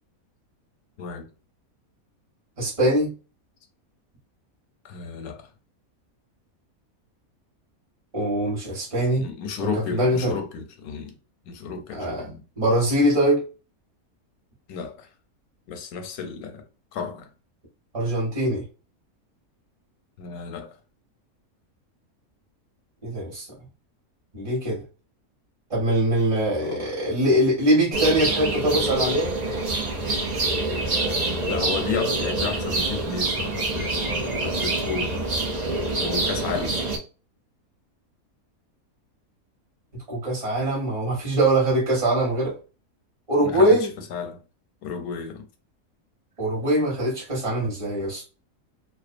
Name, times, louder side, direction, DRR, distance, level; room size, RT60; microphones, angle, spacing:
voice 1, 1.0-1.3 4.8-5.5 9.1-11.1 11.4-12.4 14.7-15.1 15.7-16.6 16.9-17.3 20.2-20.8 26.5-26.9 30.8-35.3 36.0-36.8 43.4-44.4 44.8-45.5, left 5 dB, 85° left, 1.1 m, -33 dB
voice 2, 2.6-3.1 8.1-9.2 9.6-10.3 11.9-12.3 12.6-13.4 17.9-18.6 23.0-23.5 24.3-24.8 25.7-29.3 40.1-42.5 43.3-43.9 46.4-48.2, right 1 dB, 30° right, 0.8 m, -22 dB
sound 1, 27.9-37.0, right 2 dB, 80° right, 0.3 m, -26 dB
2.4 x 2.3 x 2.4 m
omnidirectional pair, 1.5 m